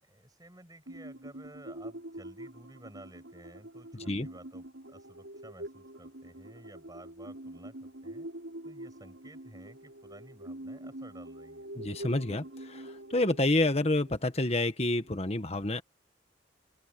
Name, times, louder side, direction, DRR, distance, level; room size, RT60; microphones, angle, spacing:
voice 1, 0.0-8.3 8.6-11.7, right 1 dB, 20° right, 6.7 m, -53 dB
sound 1, 0.9-15.3, right 1 dB, 85° right, 5.7 m, -45 dB
voice 2, 11.7-15.8, left 2 dB, 35° left, 1.5 m, -28 dB
open air
head